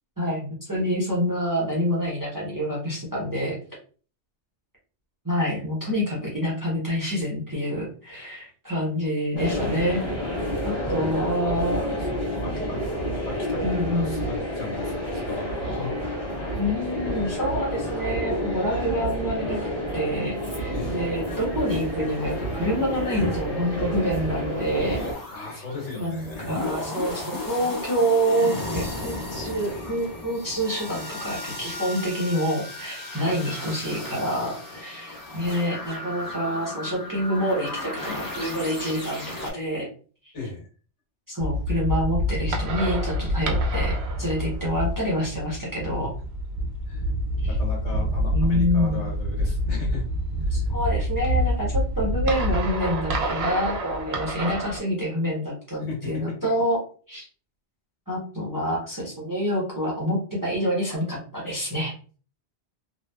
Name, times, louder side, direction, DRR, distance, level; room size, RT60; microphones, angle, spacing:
voice 1, 0.2-3.6 5.2-10.4 10.6-11.8 13.6-14.2 16.5-19.6 19.9-25.0 26.0-39.9 41.3-46.1 47.4-47.6 48.3-49.1 50.5-56.8 57.1-57.3 58.1-62.2, equal, 20° right, -4 dB, 0.7 m, -27 dB
sound 1, 9.3-25.1, equal, 45° left, 1.2 m, -29 dB
voice 2, 11.0-12.8 13.3-15.9 20.7-21.1 25.3-26.6 40.3-40.7 46.9-47.1 47.5-50.1 50.4-50.7 55.8-56.2, left 3 dB, 80° left, -3 dB, 1.4 m, -37 dB
sound 2, 21.3-39.5, left 2 dB, 25° left, 0.4 m, -36 dB
sound 3, 41.4-54.8, equal, 70° right, 0.8 m, -27 dB
2.8 x 2.1 x 2.2 m, 0.39 s
omnidirectional pair, 1.2 m